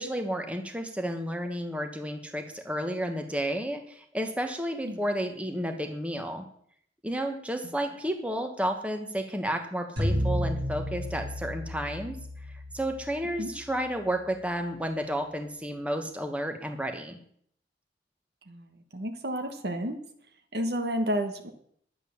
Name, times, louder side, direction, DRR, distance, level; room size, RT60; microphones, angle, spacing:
voice 1, 0.0-6.5 7.0-12.2 12.7-17.2, equal, 5° right, 5 dB, 1.2 m, -31 dB
sound 1, 10.0-14.3, equal, 85° right, 5.4 m, -33 dB
voice 2, 18.5-20.0 20.5-21.5, equal, 65° right, 6 dB, 1.3 m, -31 dB
11.0 x 8.3 x 7.0 m, 0.65 s
head